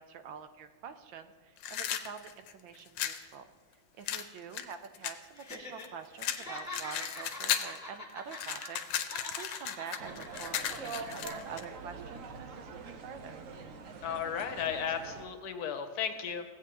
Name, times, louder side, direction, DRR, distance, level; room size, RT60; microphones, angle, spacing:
voice 1, 0.0-3.5 4.0-13.3, right 7 dB, 80° right, 9 dB, 1.3 m, -46 dB
Matchbox Handling, 1.6-3.2 4.1-5.9 6.2-7.8 8.1-11.6, left 9 dB, 75° left, 1.3 m, -35 dB
Laughter, 5.4-5.9 6.2-8.9 9.1-10.7 11.1-11.3, left 2 dB, 10° left, 1.7 m, -44 dB
sound 1, 10.0-15.3, right 4 dB, 55° right, 0.9 m, -44 dB
voice 2, 14.0-16.4, left 7 dB, 60° left, 7 dB, 1.1 m, -34 dB
16.0 x 8.4 x 2.9 m, 1.4 s
omnidirectional pair, 2.1 m